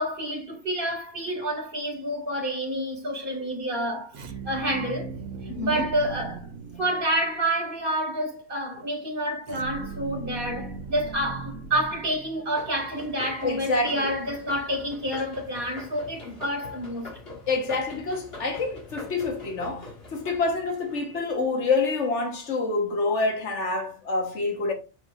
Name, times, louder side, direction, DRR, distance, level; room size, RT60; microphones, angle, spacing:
voice 1, 0.0-5.1 5.6-6.5 6.8-17.1, right 1 dB, 45° right, 2.6 m, -28 dB
sound 1, 4.1-7.4 9.5-12.7, right 4 dB, 85° right, 1.1 m, -38 dB
voice 2, 5.5-5.9 13.4-14.1 16.3-16.4 17.5-24.7, left 3 dB, 75° left, 1.6 m, -27 dB
sound 2, 12.6-21.7, left 2 dB, 55° left, 2.3 m, -43 dB
7.0 x 6.1 x 2.5 m
omnidirectional pair, 1.2 m